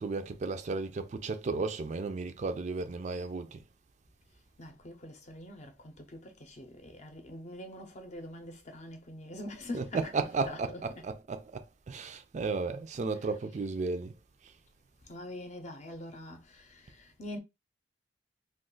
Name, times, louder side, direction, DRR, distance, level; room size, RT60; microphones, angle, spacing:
voice 1, 0.0-3.6 9.7-14.1, right 4 dB, 40° right, 0.4 m, -34 dB
voice 2, 4.6-11.1 13.1-13.4 15.0-17.4, left 1 dB, 40° left, 0.7 m, -44 dB
2.4 x 2.4 x 3.7 m
head